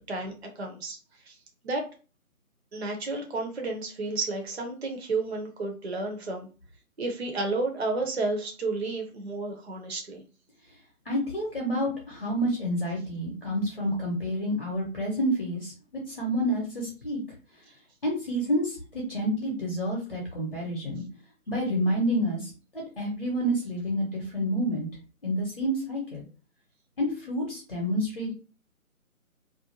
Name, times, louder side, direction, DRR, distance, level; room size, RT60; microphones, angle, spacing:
voice 1, 0.1-1.0 1.3-1.4 1.6-1.8 2.7-6.5 7.0-10.2, right 3 dB, 50° right, 2 dB, 0.5 m, -31 dB
voice 2, 11.0-17.2 18.0-21.0 21.5-24.9 25.2-26.2 27.0-28.3, equal, 40° left, -2 dB, 0.7 m, -29 dB
2.4 x 2.1 x 2.7 m, 0.35 s
figure-of-eight pair, 150°, 44 cm